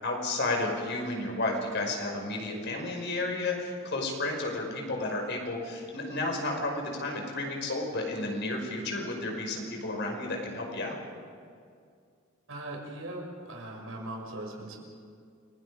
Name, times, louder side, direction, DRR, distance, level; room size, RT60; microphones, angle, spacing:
voice 1, 0.0-11.0, left 2 dB, 55° left, 1 dB, 5.5 m, -32 dB
voice 2, 12.5-14.8, right 1 dB, 75° right, 0 dB, 6.2 m, -39 dB
29.5 x 23.5 x 5.0 m, 2.3 s
head